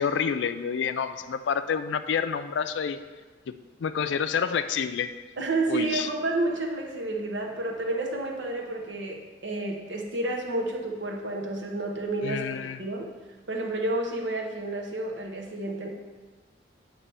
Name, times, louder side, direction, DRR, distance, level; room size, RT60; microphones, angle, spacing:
voice 1, 0.0-3.0 3.5-5.1 5.7-6.1 12.2-12.8, left 7 dB, 80° left, 11 dB, 0.4 m, -28 dB
voice 2, 5.4-12.4 12.8-13.1 13.5-15.9, right 2 dB, 85° right, 0 dB, 1.0 m, -30 dB
8.5 x 3.0 x 5.4 m, 1.4 s
head